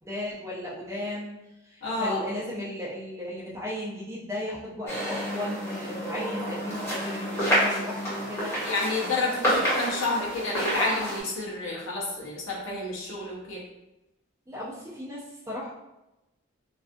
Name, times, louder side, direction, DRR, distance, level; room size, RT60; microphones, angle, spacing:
voice 1, 0.0-1.4 1.6-8.5 14.5-15.7, left 1 dB, 15° right, -6 dB, 0.4 m, -35 dB
voice 2, 1.8-2.3 8.6-13.6, left 2 dB, 70° left, -4 dB, 0.7 m, -30 dB
sound 1, 4.9-11.2, equal, 10° left, 0.8 m, -29 dB
2.3 x 2.3 x 2.5 m, 0.97 s
head